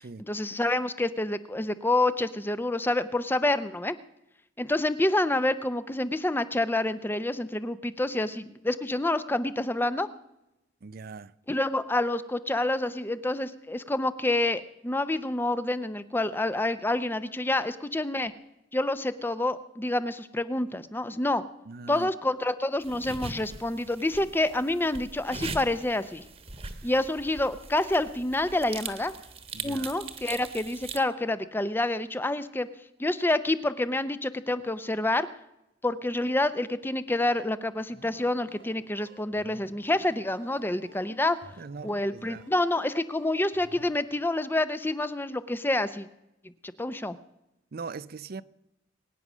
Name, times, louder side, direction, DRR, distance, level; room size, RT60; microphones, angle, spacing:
voice 1, 0.2-4.0 4.6-10.1 11.5-18.3 18.7-21.4 21.9-26.2 26.8-29.1 29.6-32.7 33.0-35.3 35.8-41.4 41.8-46.1 46.8-47.1, left 2 dB, 10° left, 0.6 m, -28 dB
voice 2, 10.8-11.3 21.7-22.1 26.6-26.9 29.5-29.9 41.2-42.4 47.7-48.4, right 4 dB, 55° right, 0.5 m, -41 dB
sound 1, 22.8-31.0, right 4 dB, 35° right, 1.2 m, -41 dB
sound 2, 37.8-43.9, right 2 dB, 90° right, 2.7 m, -53 dB
22.5 x 9.6 x 6.1 m
head